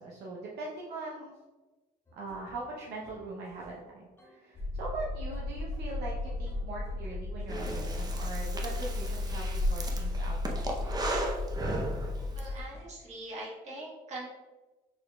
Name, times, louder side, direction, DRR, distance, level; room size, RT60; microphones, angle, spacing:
voice 1, 0.0-1.3 2.2-10.9, right 2 dB, 75° right, -4 dB, 0.8 m, -41 dB
sound 1, 2.1-3.9 4.2-8.5 8.7-9.5 9.9-13.1, equal, 15° left, 0.9 m, -56 dB
sound 2, 4.5-12.6, left 2 dB, 40° left, 0.8 m, -34 dB
Breathing, 7.5-12.5, right 2 dB, 25° right, 0.6 m, -36 dB
voice 2, 12.3-14.3, right 2 dB, 40° right, -4 dB, 1.5 m, -42 dB
6.3 x 2.9 x 2.3 m, 1.2 s
cardioid pair, 110°, 17 cm